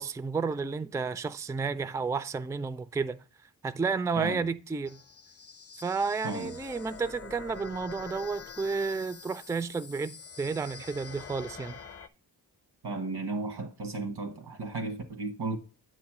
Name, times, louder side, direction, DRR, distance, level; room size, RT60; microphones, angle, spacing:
voice 1, 0.0-3.2 3.6-5.0 5.8-11.8, right 4 dB, 10° right, 0.3 m, -31 dB
sound 1, 4.8-12.1, left 6 dB, 35° left, 0.6 m, -46 dB
voice 2, 12.8-15.6, right 3 dB, 90° right, 1.4 m, -34 dB
8.4 x 3.3 x 6.0 m
cardioid pair, 75°, 39 cm